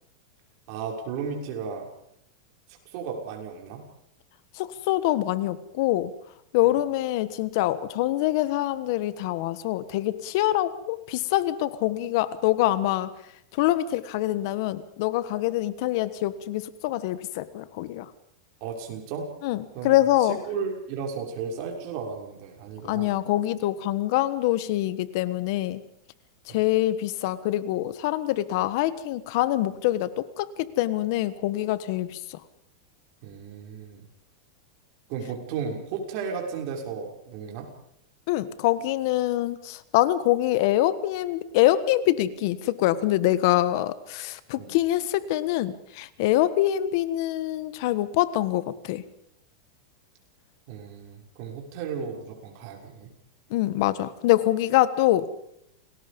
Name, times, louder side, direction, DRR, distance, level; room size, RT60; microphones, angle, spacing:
voice 1, 0.7-1.9 2.9-3.8 18.6-19.3 19.7-23.1 26.5-26.6 33.2-34.0 35.1-37.7 44.6-44.7 50.7-53.1, right 6 dB, 50° right, 1 dB, 6.2 m, -34 dB
voice 2, 4.6-6.1 6.5-13.1 13.5-18.1 19.4-20.4 22.8-25.8 26.5-32.4 38.3-49.0 53.5-55.3, left 14 dB, 55° left, 15 dB, 1.3 m, -25 dB
29.0 x 19.5 x 5.4 m, 0.71 s
supercardioid pair, 145°, 2 cm